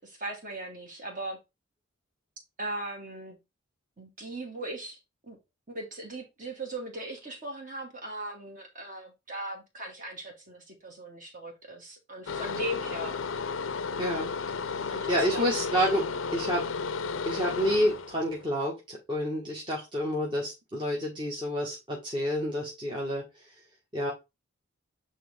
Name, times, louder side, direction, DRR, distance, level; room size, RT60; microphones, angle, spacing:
voice 1, 0.0-1.4 2.6-3.4 4.0-5.0 5.2-5.4 5.7-13.2 14.9-15.9, right 1 dB, 40° right, 2.4 m, -39 dB
sound 1, 12.3-18.4, left 5 dB, 70° left, 0.5 m, -33 dB
voice 2, 14.0-14.3 14.7-16.0 16.3-16.7 17.2-23.5 23.9-24.1, equal, 25° right, 1.7 m, -29 dB
9.1 x 3.9 x 3.6 m
head